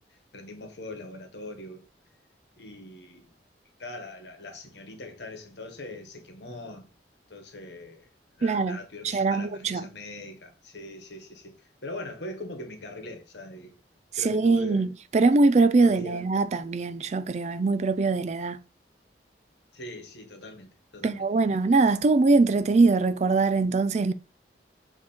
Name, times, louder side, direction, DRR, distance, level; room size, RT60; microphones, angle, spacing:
voice 1, 0.0-1.8 2.6-3.3 3.8-6.9 7.3-8.1 8.4-13.7 14.2-14.9 15.8-16.2 19.7-21.3, left 1 dB, 70° left, 1.3 m, -41 dB
voice 2, 8.4-8.8 9.0-9.8 14.1-18.6 21.0-24.1, right 3 dB, 40° right, 0.3 m, -22 dB
7.3 x 3.0 x 4.3 m
head